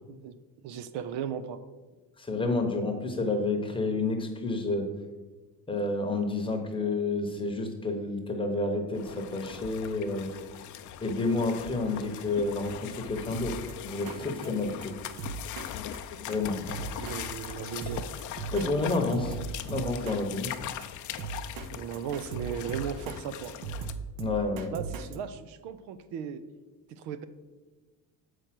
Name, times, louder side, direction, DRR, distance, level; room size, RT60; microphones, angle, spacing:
voice 1, 0.6-1.6 16.8-18.0 21.7-23.5 24.7-26.4 26.9-27.2, right 8 dB, 85° right, 12 dB, 0.7 m, -36 dB
voice 2, 2.2-4.9 5.7-10.3 11.0-15.0 16.3-16.6 17.8-17.9 18.5-19.3 19.6-20.5 24.2-24.7, left 3 dB, 15° left, 3 dB, 0.9 m, -30 dB
sound 1, 8.9-23.9, left 10 dB, 50° left, 0.5 m, -40 dB
Drum kit, 13.3-13.7 14.1-14.2 14.4-14.5 14.8-14.9 15.2-15.7 15.9-16.0 16.3-16.4 16.7-17.2 17.4-17.5 17.8-18.7 18.9-20.2 20.4-20.5 20.8-20.9 21.2-21.7 21.9-23.2 23.4-25.2, right 7 dB, 55° right, 0.7 m, -37 dB
6.6 x 4.8 x 5.9 m, 1.2 s
cardioid pair, 140°, 40 cm